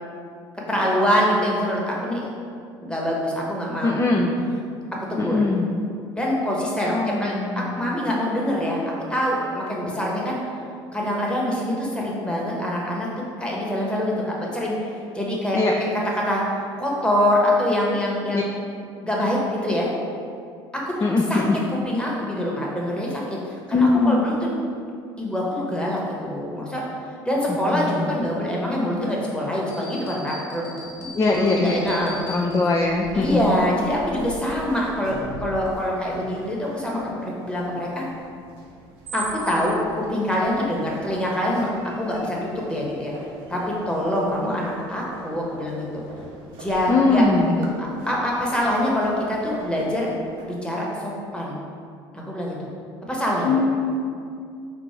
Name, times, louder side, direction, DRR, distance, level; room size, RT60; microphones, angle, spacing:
voice 1, 0.7-2.3 2.8-4.0 5.1-5.4 6.2-10.4 10.9-13.1 13.4-15.6 16.2-18.5 19.0-19.9 20.7-20.9 21.3-21.4 21.8-24.5 25.2-26.8 27.2-30.7 31.0-32.3 33.1-38.1 39.1-41.7 42.0-43.1 43.5-43.6 43.9-46.0 46.6-47.3 48.1-50.1 50.4-51.6 52.1-52.5 53.1-53.5, left 1 dB, 10° left, -4 dB, 1.2 m, -25 dB
voice 2, 3.8-4.3 5.2-5.7 6.9-8.0 15.5-15.7 18.3-18.4 21.0-21.6 23.7-24.2 27.5-28.2 31.1-32.0 32.3-33.4 46.9-47.6 53.4-53.9, left 3 dB, 25° left, 1 dB, 0.4 m, -21 dB
sound 1, 29.7-33.0, left 2 dB, 60° left, 1.4 m, -39 dB
sound 2, 30.8-50.4, right 2 dB, 80° right, 0.7 m, -42 dB
4.4 x 2.5 x 4.4 m, 2.4 s
hypercardioid pair, 65°, 12 cm